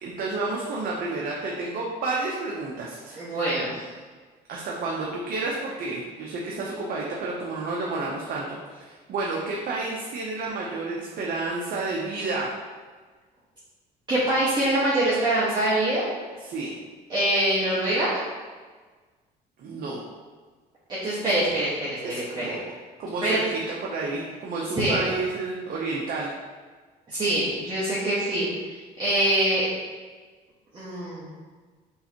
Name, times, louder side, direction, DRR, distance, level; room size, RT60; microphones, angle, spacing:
voice 1, 0.0-3.4 4.5-12.5 16.4-16.7 19.6-20.0 22.0-22.6 23.0-26.3, right 3 dB, 60° right, -3 dB, 0.7 m, -30 dB
voice 2, 3.1-3.8 14.1-16.1 17.1-18.2 20.9-22.6 23.2-23.5 24.8-25.0 27.1-28.5 29.0-29.7 30.7-31.3, right 1 dB, 25° right, -10 dB, 1.4 m, -24 dB
5.5 x 3.3 x 2.9 m, 1.4 s
cardioid pair, 110°, 17 cm